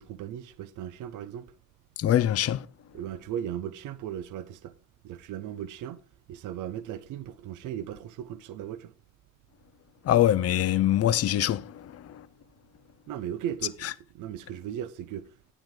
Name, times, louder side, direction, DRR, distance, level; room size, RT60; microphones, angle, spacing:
voice 1, 0.0-1.5 2.9-4.7 5.0-6.0 6.3-8.9 13.1-15.3, right 10 dB, 85° right, 0.7 m, -37 dB
voice 2, 2.0-2.7 10.0-12.3 13.8-13.9, left 12 dB, 50° left, 0.6 m, -24 dB
10.5 x 8.9 x 3.7 m
cardioid pair, 90°, 30 cm